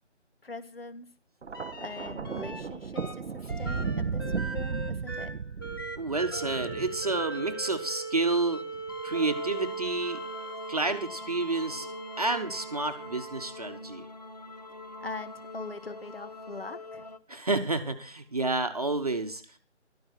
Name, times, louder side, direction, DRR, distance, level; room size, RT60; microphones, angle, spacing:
voice 1, 0.4-1.1 1.8-5.3 15.0-17.1, left 3 dB, 55° left, 13 dB, 1.7 m, -42 dB
Thunder, 1.4-7.8 8.7-9.0, right 5 dB, 70° right, 0.7 m, -35 dB
sound 1, 1.5-2.6 2.9-13.7 14.6-16.1 17.9-18.0, right 2 dB, 20° left, 1.2 m, -40 dB
voice 2, 6.0-8.6 9.0-10.2 10.7-11.9 12.2-14.1 17.3-19.6, right 3 dB, 30° right, 6 dB, 1.2 m, -30 dB
sound 2, 9.1-17.2, left 3 dB, 35° left, 0.8 m, -45 dB
15.0 x 13.0 x 4.5 m, 0.37 s
figure-of-eight pair, 160°, 36 cm